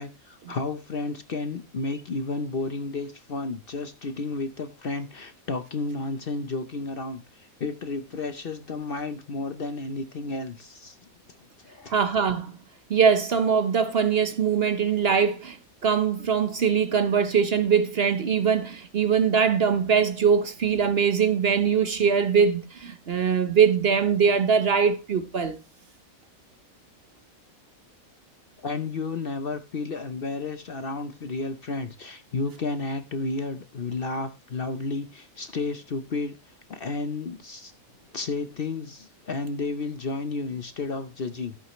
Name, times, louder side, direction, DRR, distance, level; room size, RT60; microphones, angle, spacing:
voice 1, 0.0-11.0 11.6-12.1 28.6-36.4 36.7-37.7 38.1-41.6, left 3 dB, 50° left, 0.9 m, -32 dB
voice 2, 11.9-12.5 12.9-15.6 15.8-25.6, right 6 dB, 50° right, 1.0 m, -22 dB
14.5 x 8.3 x 3.0 m
omnidirectional pair, 1.5 m